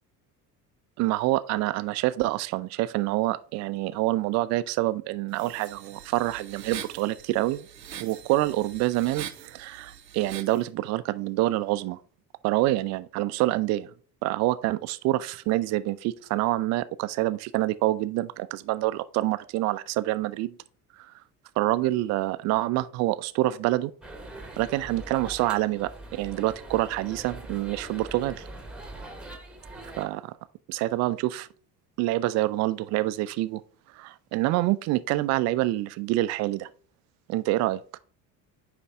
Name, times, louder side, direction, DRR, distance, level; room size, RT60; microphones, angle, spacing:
voice 1, 1.0-7.7 8.0-12.0 12.4-13.9 14.2-20.6 21.0-21.1 21.6-23.9 24.6-28.4 30.0-30.3 30.7-31.5 32.0-33.6 33.9-36.7 37.3-38.0, right 17 dB, 35° right, 0.4 m, -27 dB
sound 1, 5.3-10.6, right 9 dB, 85° right, 0.7 m, -43 dB
sound 2, 24.0-30.1, right 1 dB, ahead, 1.1 m, -42 dB
9.1 x 3.2 x 3.5 m
figure-of-eight pair, 55°, 49 cm